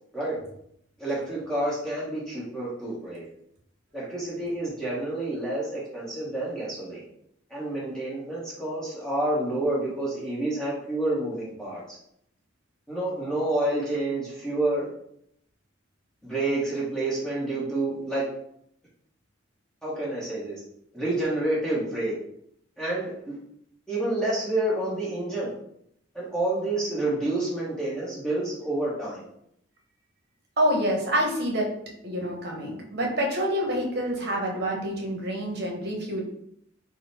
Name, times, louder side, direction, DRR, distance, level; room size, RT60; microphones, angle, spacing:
voice 1, 1.0-3.3 3.9-7.0 7.5-12.0 12.9-14.9 16.2-18.2 19.8-20.6 20.9-22.1 22.8-23.4 23.9-25.5 26.1-29.3, right 2 dB, 5° left, -8 dB, 1.0 m, -29 dB
voice 2, 30.6-31.7 32.0-36.2, equal, 55° right, 0 dB, 0.8 m, -27 dB
3.7 x 2.1 x 4.0 m, 0.72 s
head